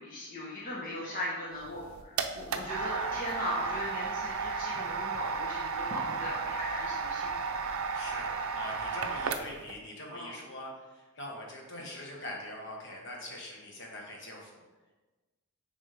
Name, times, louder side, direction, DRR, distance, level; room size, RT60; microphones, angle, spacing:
voice 1, 0.0-7.7 10.1-10.3, left 1 dB, 40° left, -6 dB, 1.1 m, -38 dB
sound 1, 1.6-9.7, right 5 dB, 70° right, 0.5 m, -34 dB
voice 2, 7.9-14.6, left 1 dB, 55° left, -1 dB, 1.3 m, -43 dB
9.4 x 3.6 x 3.4 m, 1.2 s
head